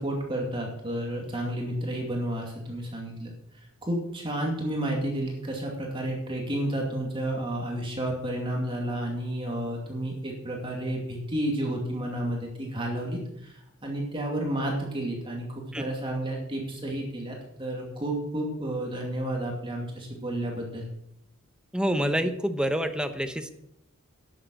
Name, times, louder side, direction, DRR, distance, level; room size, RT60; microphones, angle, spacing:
voice 1, 0.0-3.3 3.9-20.8, right 1 dB, 25° right, 0 dB, 2.4 m, -31 dB
voice 2, 21.7-23.5, equal, 5° right, 7 dB, 0.9 m, -27 dB
11.0 x 7.6 x 7.6 m, 0.79 s
head